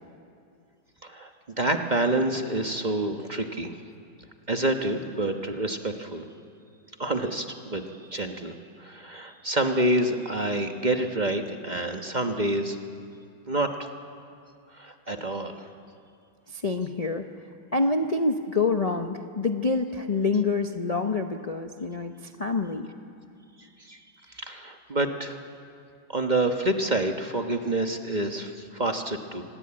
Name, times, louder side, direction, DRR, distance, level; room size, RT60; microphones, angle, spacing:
voice 1, 1.6-3.7 4.5-6.2 7.0-7.8 8.1-12.8 13.5-13.9 14.8-15.7 23.8-24.0 24.3-25.4 26.1-29.4, right 1 dB, 30° right, 5 dB, 1.0 m, -28 dB
voice 2, 16.5-17.3 17.7-22.9, left 3 dB, 55° left, 4 dB, 0.4 m, -27 dB
25.5 x 20.5 x 8.7 m, 2.5 s
omnidirectional pair, 2.2 m